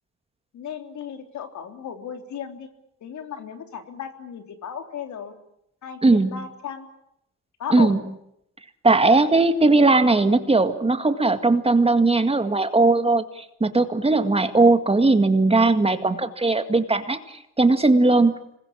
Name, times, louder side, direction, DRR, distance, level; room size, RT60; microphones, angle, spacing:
voice 1, 0.5-2.7 3.0-5.3 5.8-6.9 7.6-8.0, left 7 dB, 70° left, 6 dB, 3.4 m, -35 dB
voice 2, 6.0-6.4 7.7-8.0 8.8-18.3, right 3 dB, 20° right, 9 dB, 2.0 m, -19 dB
26.0 x 21.0 x 8.6 m, 0.78 s
cardioid pair, 90°, 30 cm